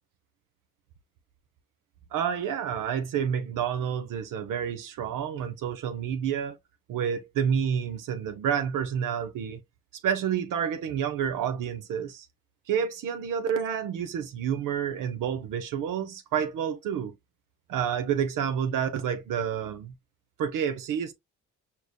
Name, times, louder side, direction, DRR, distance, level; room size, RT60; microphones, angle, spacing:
voice 1, 2.1-6.6 6.9-9.6 9.9-12.3 12.7-17.1 17.7-19.9 20.4-21.1, right 8 dB, 70° right, 0.6 m, -29 dB
4.9 x 2.9 x 2.2 m
supercardioid pair, 55°, 34 cm